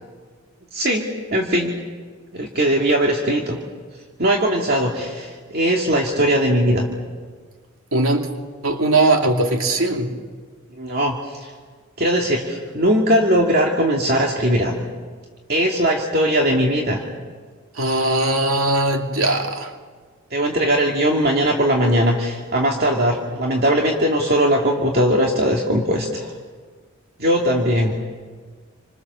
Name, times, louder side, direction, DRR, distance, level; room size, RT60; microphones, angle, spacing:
voice 1, 0.7-1.8 2.3-3.6 4.2-6.9 10.8-11.2 11.4-11.5 12.0-14.8 15.5-17.0 20.3-26.3 27.2-27.9, equal, 50° right, -1 dB, 2.5 m, -19 dB
voice 2, 7.9-8.3 8.6-10.1 17.8-19.7, right 2 dB, 85° right, 3 dB, 2.6 m, -19 dB
29.0 x 26.5 x 6.9 m, 1.5 s
head